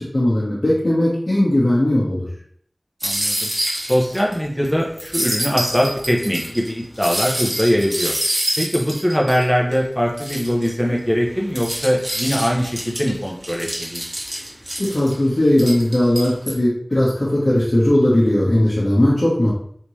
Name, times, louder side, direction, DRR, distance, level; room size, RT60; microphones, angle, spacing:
voice 1, 0.0-2.3 14.8-19.5, left 1 dB, 65° left, -9 dB, 1.0 m, -18 dB
voice 2, 3.0-3.5 3.9-8.1 8.6-14.1, equal, 5° left, -1 dB, 0.7 m, -21 dB
sound 1, 3.0-4.3 4.6-4.7 5.0-9.8 10.2-10.7 11.2-15.1 15.6-16.5, equal, 45° right, 1.1 m, -26 dB
3.4 x 2.8 x 3.0 m, 0.63 s
wide cardioid pair, 40°, 0 cm